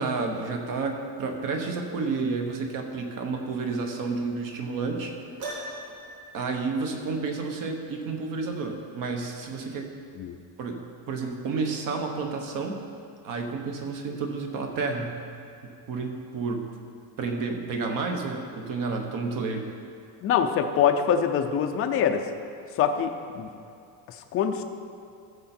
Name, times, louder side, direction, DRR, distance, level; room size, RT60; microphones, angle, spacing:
voice 1, 0.0-5.1 6.3-9.9 10.6-12.8 13.2-15.1 15.9-16.7 17.2-19.7, right 4 dB, 45° right, 3 dB, 1.3 m, -30 dB
Piano, 5.4-6.2, right 1 dB, 70° right, 2.7 m, -37 dB
voice 2, 20.2-22.3 22.8-23.5 24.1-24.6, left 8 dB, 30° left, 6 dB, 0.5 m, -24 dB
14.0 x 6.8 x 4.4 m, 2.5 s
cardioid pair, 160°, 44 cm